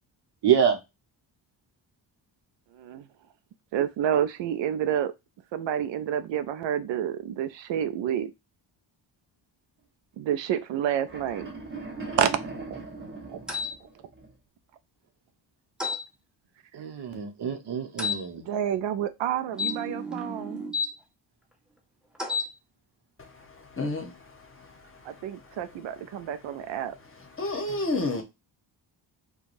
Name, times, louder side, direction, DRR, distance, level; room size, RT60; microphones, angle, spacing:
voice 1, 0.4-0.8 16.7-18.4, right 8 dB, 65° right, 1.0 m, -25 dB
voice 2, 2.7-3.1 3.7-5.1 5.5-8.3 10.2-11.5 12.1-12.3 12.7-12.8 13.3-13.4 18.5-20.6 25.1-26.9, right 9 dB, 80° right, 0.5 m, -29 dB
sound 1, 11.0-14.3, right 3 dB, 30° right, 1.4 m, -40 dB
sound 2, 13.5-13.7 15.8-16.0 18.0-18.2 19.5-20.9 22.1-22.5, left 4 dB, ahead, 0.5 m, -31 dB
voice 3, 23.8-24.1 27.4-28.2, left 2 dB, 30° left, 1.0 m, -28 dB
4.6 x 2.3 x 2.5 m
cardioid pair, 130°, 44 cm